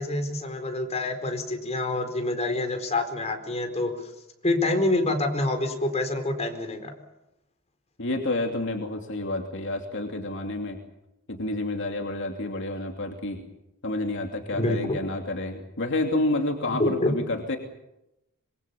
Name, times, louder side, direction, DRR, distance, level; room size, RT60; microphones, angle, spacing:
voice 1, 0.0-3.9 4.4-6.9 14.6-15.0 16.8-17.1, left 2 dB, 30° left, 5 dB, 4.4 m, -26 dB
voice 2, 8.0-10.8 11.3-13.4 13.8-17.6, left 2 dB, 60° left, 3 dB, 2.8 m, -29 dB
25.5 x 23.5 x 7.1 m, 0.88 s
head